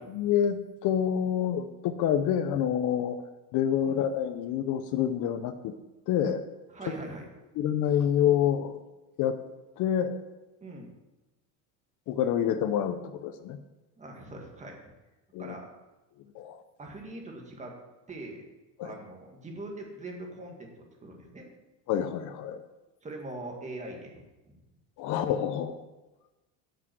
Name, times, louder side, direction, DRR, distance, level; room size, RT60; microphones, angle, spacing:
voice 1, 0.0-3.2 3.5-5.7 6.1-6.4 7.6-8.8 9.2-9.4 9.8-10.2 12.1-13.6 15.3-15.5 16.3-16.6 18.8-18.9 21.9-22.6 25.0-25.8, left 9 dB, 55° left, 10 dB, 0.8 m, -27 dB
voice 2, 6.7-7.3 10.6-11.0 14.0-14.8 15.4-15.7 16.8-17.7 18.1-18.4 18.8-21.5 23.0-24.2, right 2 dB, 20° right, 1 dB, 2.1 m, -42 dB
9.1 x 6.3 x 7.9 m, 1.1 s
cardioid pair, 140°, 36 cm